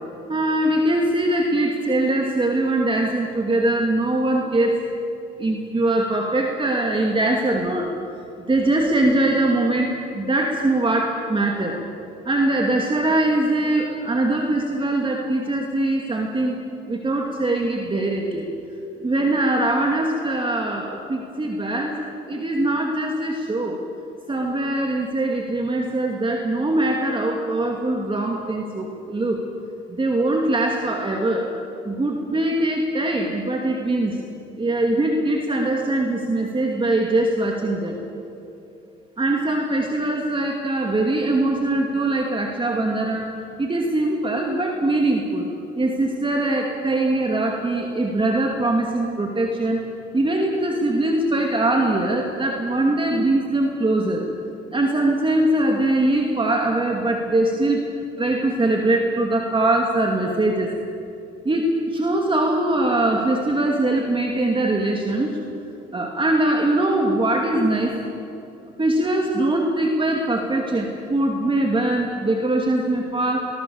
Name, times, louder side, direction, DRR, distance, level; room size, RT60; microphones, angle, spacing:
voice 1, 0.3-4.7 5.4-7.9 8.5-11.7 12.2-16.6 16.9-18.4 19.0-22.0 22.3-23.8 24.3-29.4 29.9-31.5 31.8-34.2 34.6-37.9 39.2-43.3 43.6-45.5 45.8-49.8 50.1-54.2 54.7-57.8 58.2-60.7 61.4-65.3 65.9-67.9 68.8-73.4, right 2 dB, 25° right, 1 dB, 2.6 m, -22 dB
23.5 x 20.0 x 7.2 m, 2.7 s
cardioid pair, 90°, 20 cm